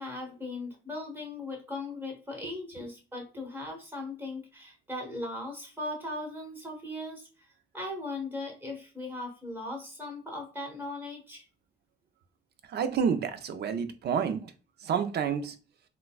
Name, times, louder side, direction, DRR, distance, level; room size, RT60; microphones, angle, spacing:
voice 1, 0.0-7.3 7.7-11.4, left 2 dB, 10° right, 0 dB, 1.3 m, -38 dB
voice 2, 12.7-14.5 14.8-15.5, right 7 dB, 55° right, 9 dB, 0.5 m, -29 dB
3.8 x 2.2 x 2.3 m, 0.34 s
cardioid pair, 90°, 20 cm